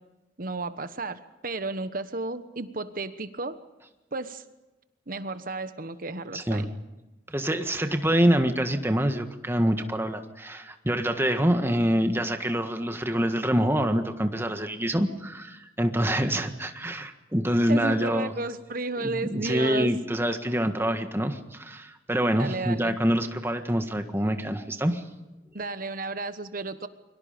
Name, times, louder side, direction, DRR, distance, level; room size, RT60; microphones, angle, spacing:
voice 1, 0.4-3.6 4.1-4.4 5.1-6.7 17.7-19.9 22.4-23.0 25.5-26.9, right 3 dB, 50° right, 11 dB, 1.2 m, -33 dB
voice 2, 6.3-6.7 7.3-18.3 19.0-25.0, equal, 10° right, 7 dB, 1.6 m, -26 dB
29.0 x 24.0 x 5.2 m, 1.0 s
head